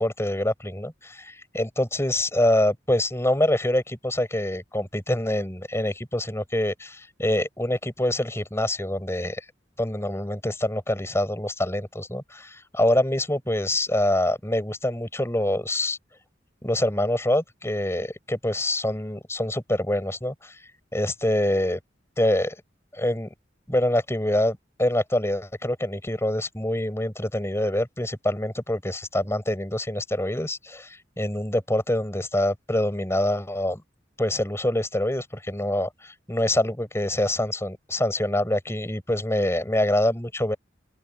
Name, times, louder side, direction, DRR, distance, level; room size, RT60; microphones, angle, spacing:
voice 1, 0.0-9.4 9.8-16.0 16.6-20.6 20.9-21.8 22.2-22.6 22.9-23.3 23.7-33.8 34.2-40.6, left 1 dB, 15° left, 5.9 m, -25 dB
open air
head